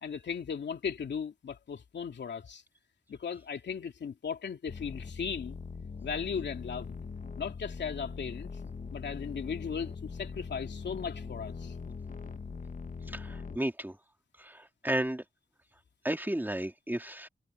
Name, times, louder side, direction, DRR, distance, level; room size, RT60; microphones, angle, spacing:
voice 1, 0.0-2.6 3.1-5.6 6.0-7.0 7.4-11.7, left 6 dB, 75° left, 2.7 m, -37 dB
sound 1, 4.7-13.6, left 5 dB, 45° left, 1.2 m, -41 dB
voice 2, 13.1-14.0 14.4-15.2 16.0-17.3, right 1 dB, 10° right, 2.7 m, -33 dB
cardioid pair, 60°, 18 cm